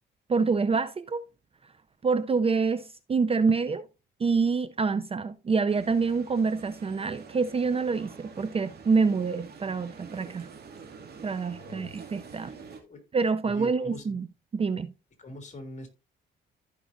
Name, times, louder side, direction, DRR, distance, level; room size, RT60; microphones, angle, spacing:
voice 1, 0.3-1.2 2.0-3.9 4.2-10.5 11.2-12.5 13.1-14.3 14.5-14.9, right 4 dB, 30° right, 0.5 m, -26 dB
sound 1, 5.7-12.8, right 5 dB, 55° right, 2.4 m, -47 dB
voice 2, 11.5-11.9 12.4-12.6 12.8-13.0 13.4-14.1 15.2-15.9, left 1 dB, 35° left, 2.6 m, -43 dB
14.5 x 5.3 x 2.6 m
cardioid pair, 90°, 20 cm